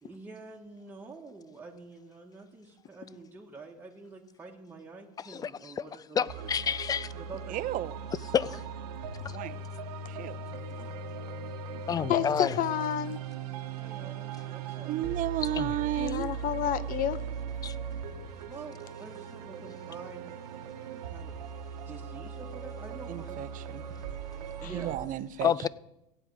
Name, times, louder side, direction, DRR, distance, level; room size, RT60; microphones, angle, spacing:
voice 1, 0.0-6.5 7.1-7.8 8.4-8.7 10.8-11.0 11.9-12.3 13.8-14.9 18.5-20.3 21.0-21.4 21.8-23.9 24.2-25.1, right 3 dB, 10° right, 1.6 m, -47 dB
voice 2, 6.2-7.1 8.3-8.5 11.9-12.5 15.6-15.7 25.4-25.7, left 8 dB, 20° left, 0.3 m, -28 dB
sound 1, 6.3-25.0, right 6 dB, 90° right, 1.2 m, -39 dB
voice 3, 7.5-7.9 9.2-9.6 10.1-10.4 14.9-16.3 23.1-23.8 24.7-25.5, right 13 dB, 45° right, 0.7 m, -33 dB
voice 4, 12.1-13.2 16.0-17.2 24.6-24.7, left 11 dB, 45° left, 0.8 m, -30 dB
15.5 x 9.0 x 4.8 m
supercardioid pair, 110°, 20 cm